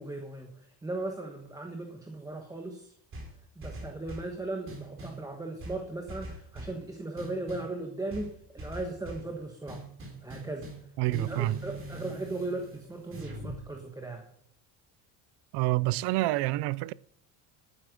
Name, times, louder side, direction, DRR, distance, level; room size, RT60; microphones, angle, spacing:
voice 1, 0.0-2.9 3.6-9.8 10.2-10.7 11.0-14.3, right 2 dB, 10° right, 1.3 m, -37 dB
sound 1, 3.1-4.3 4.7-5.2 5.6-6.8 7.2-7.7 8.1-9.3 9.7-13.6, right 2 dB, 30° right, 3.9 m, -43 dB
voice 2, 11.0-11.6 15.5-16.9, right 18 dB, 75° right, 0.6 m, -27 dB
12.0 x 9.5 x 5.2 m
cardioid pair, 155°, 40 cm